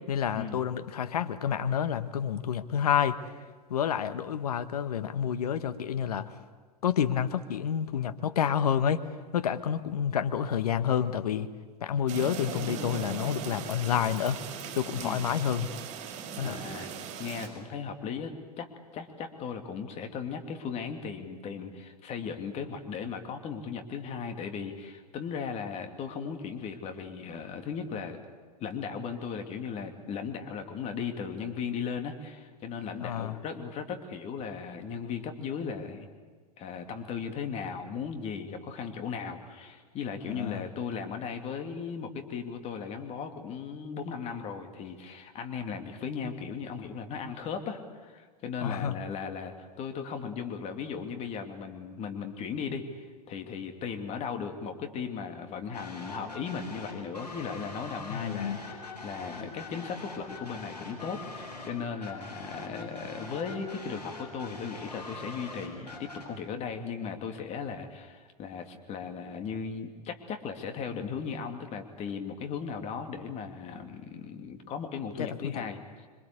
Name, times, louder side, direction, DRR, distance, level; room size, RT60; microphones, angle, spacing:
voice 1, 0.1-3.2 3.7-6.3 6.8-9.0 9.3-11.5 11.8-14.4 14.8-15.7 16.4-16.6 33.0-33.4 40.3-40.6 48.6-48.9 58.1-58.6 75.2-75.5, left 8 dB, 65° left, 10 dB, 1.4 m, -29 dB
sound 1, 12.1-17.5, right 7 dB, 35° right, 5.3 m, -39 dB
voice 2, 14.9-15.2 16.4-16.9 17.2-28.2 28.6-36.1 36.6-76.1, left 6 dB, 30° left, 5 dB, 2.6 m, -37 dB
sound 2, 55.7-66.3, left 2 dB, 85° left, 7.8 m, -43 dB
26.0 x 24.5 x 8.4 m, 1.5 s
figure-of-eight pair, 95°, 21 cm